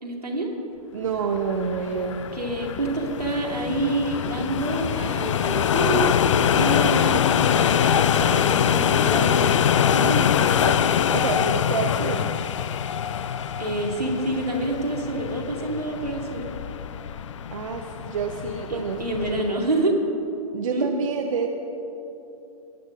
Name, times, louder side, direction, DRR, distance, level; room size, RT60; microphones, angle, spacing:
voice 1, 0.0-0.5 2.3-6.2 6.5-9.5 12.0-12.1 13.6-16.5 18.7-20.0 20.7-20.9, right 2 dB, 85° right, -1 dB, 2.1 m, -27 dB
voice 2, 0.9-2.2 9.9-10.8 11.1-12.2 17.5-19.4 20.5-21.5, right 6 dB, 55° right, 2 dB, 0.7 m, -28 dB
sound 1, 1.3-19.6, left 8 dB, 50° left, 0.4 m, -24 dB
19.5 x 11.0 x 2.5 m, 3.0 s
figure-of-eight pair, 115°, 20 cm